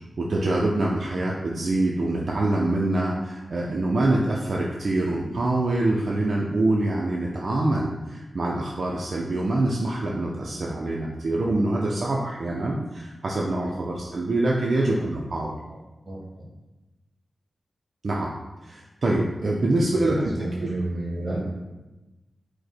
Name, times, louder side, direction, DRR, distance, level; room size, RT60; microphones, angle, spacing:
voice 1, 0.2-15.5 18.0-18.3 18.6-20.3 20.6-20.7, right 2 dB, 50° right, -3 dB, 0.4 m, -25 dB
voice 2, 16.0-16.4 19.7-21.4, right 2 dB, 15° right, -6 dB, 1.5 m, -31 dB
5.0 x 2.1 x 4.2 m, 1.1 s
wide cardioid pair, 160°, 0 cm